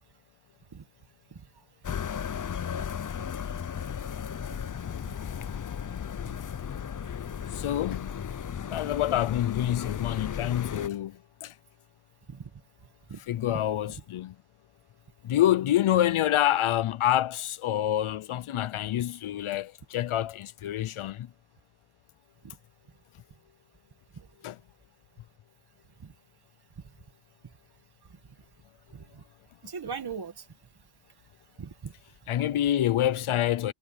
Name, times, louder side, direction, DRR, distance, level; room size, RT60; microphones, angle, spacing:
sound 1, 1.8-10.9, left 8 dB, 40° left, 0.6 m, -35 dB
voice 1, 7.5-8.1 8.7-11.5 13.3-14.3 15.2-21.3 24.4-24.6 32.3-33.7, left 12 dB, 85° left, 0.6 m, -27 dB
voice 2, 29.6-30.4 31.6-31.9, right 6 dB, 50° right, 2.0 m, -38 dB
wide cardioid pair, 105°, 48 cm